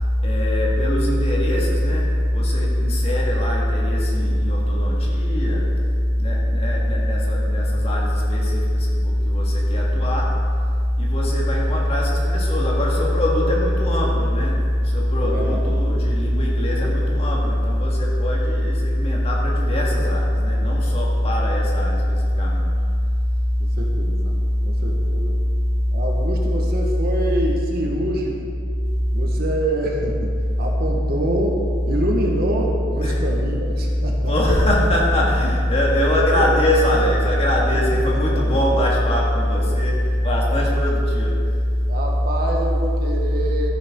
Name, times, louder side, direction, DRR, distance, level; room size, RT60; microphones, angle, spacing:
voice 1, 0.2-5.7 6.2-10.4 11.0-22.6 33.0-33.2 34.3-41.4, left 1 dB, 30° left, -3 dB, 2.0 m, -20 dB
voice 2, 15.2-15.6 16.8-16.9 23.7-24.4 24.6-25.5 25.9-28.6 29.1-34.3 36.3-36.5 37.7-38.6 41.9-43.7, right 1 dB, 50° right, 0 dB, 1.5 m, -26 dB
13.0 x 10.0 x 3.8 m, 2.3 s
head